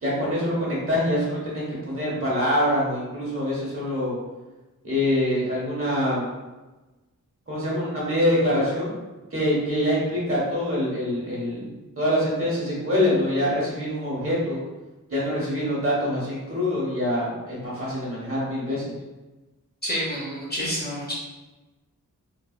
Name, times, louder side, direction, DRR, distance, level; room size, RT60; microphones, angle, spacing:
voice 1, 0.0-4.1 4.8-6.3 7.5-8.9 9.3-14.6 15.1-18.9, left 1 dB, 40° right, -6 dB, 1.4 m, -25 dB
voice 2, 19.8-21.1, equal, 30° left, -5 dB, 0.8 m, -28 dB
3.9 x 2.4 x 2.4 m, 1.1 s
wide cardioid pair, 105°, 34 cm